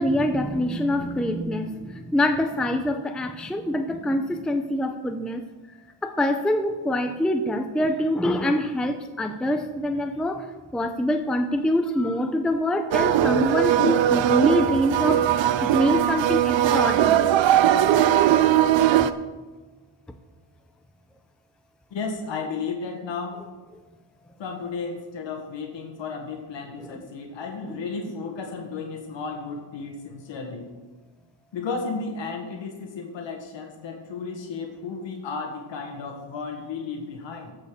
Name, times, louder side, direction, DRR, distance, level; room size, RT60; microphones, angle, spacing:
voice 1, 0.0-5.4 6.0-10.5 10.7-17.3 26.8-27.0 27.7-27.8, left 1 dB, ahead, 6 dB, 0.5 m, -25 dB
sound 1, 12.9-19.1, right 11 dB, 85° right, 0.7 m, -20 dB
voice 2, 21.9-23.5 24.4-30.7 31.5-37.5, left 4 dB, 80° left, 2 dB, 1.6 m, -33 dB
15.0 x 5.2 x 6.6 m, 1.3 s
wide cardioid pair, 145°, 44 cm